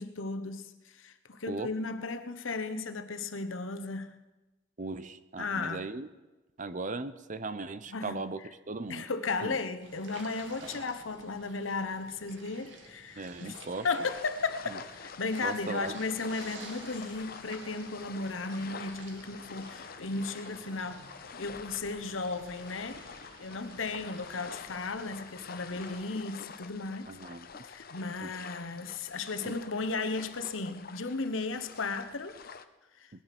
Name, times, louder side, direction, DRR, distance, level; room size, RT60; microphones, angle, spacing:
voice 1, 0.0-4.1 5.4-5.9 7.7-8.5 8.9-21.1 21.4-23.0 23.4-27.2 27.6-32.4 33.0-33.1, left 3 dB, 80° left, 1.1 m, -35 dB
voice 2, 4.8-6.1 6.6-8.4 8.7-9.0 9.4-9.6 13.2-13.9 15.4-15.9 27.1-27.5 28.2-28.3 29.5-29.6, right 3 dB, 40° right, 0.7 m, -37 dB
sound 1, 9.8-26.1, right 2 dB, 65° right, 2.4 m, -52 dB
sound 2, 14.0-32.7, left 6 dB, 50° left, 0.8 m, -47 dB
19.5 x 11.5 x 6.0 m
head